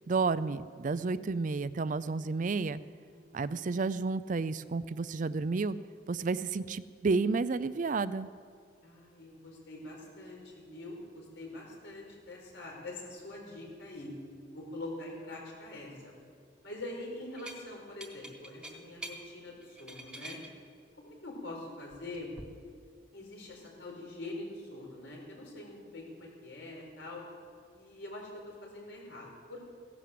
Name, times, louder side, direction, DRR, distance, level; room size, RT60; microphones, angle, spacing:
voice 1, 0.1-2.8 3.3-5.8 6.1-8.3, right 4 dB, 45° right, 15 dB, 0.4 m, -31 dB
voice 2, 3.1-3.5 8.8-14.1 14.5-16.1 16.6-20.4 21.0-22.3 23.1-27.2 27.7-29.6, left 2 dB, 85° left, -1 dB, 4.8 m, -44 dB
sound 1, 17.4-17.6 18.0-19.2 19.6-20.5 21.9-22.4, right 1 dB, 5° right, 1.4 m, -45 dB
16.5 x 11.0 x 7.6 m, 2.1 s
head